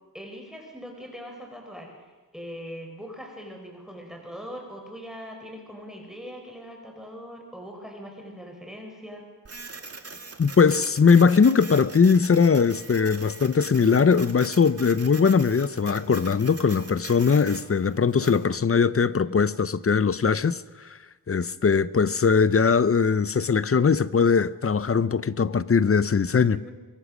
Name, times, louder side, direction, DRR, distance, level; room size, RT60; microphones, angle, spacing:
voice 1, 0.1-1.9 2.3-9.2 19.3-19.4 26.4-26.7, equal, ahead, 4.4 m, -41 dB
Printer, 9.5-18.4, right 4 dB, 40° right, 2.1 m, -42 dB
voice 2, 10.4-20.6 21.3-26.6, left 5 dB, 40° left, 0.7 m, -20 dB
23.5 x 22.5 x 6.3 m
wide cardioid pair, 110°, 35 cm